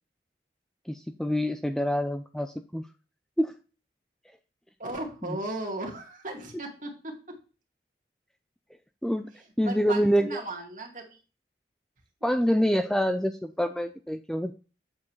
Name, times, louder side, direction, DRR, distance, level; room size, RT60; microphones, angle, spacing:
voice 1, 0.9-2.9 3.4-3.5 5.2-5.4 9.0-9.3 9.6-10.4 12.2-14.5, equal, 5° left, 8 dB, 0.3 m, -26 dB
voice 2, 4.8-7.4 9.6-11.2, right 2 dB, 45° right, 1 dB, 2.2 m, -36 dB
8.5 x 7.1 x 3.1 m, 0.35 s
head